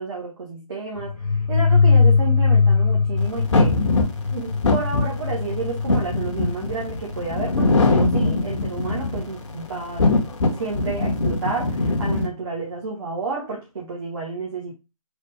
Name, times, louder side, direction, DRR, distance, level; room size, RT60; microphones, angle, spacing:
voice 1, 0.0-3.8 4.3-10.1 10.6-14.7, right 4 dB, 40° right, 1.3 m, -31 dB
sound 1, 1.0-9.4, left 4 dB, 85° left, 0.8 m, -22 dB
sound 2, 3.5-9.4 9.8-12.3, left 3 dB, 55° left, 1.1 m, -21 dB
4.2 x 2.5 x 4.6 m
figure-of-eight pair, 155°, 19 cm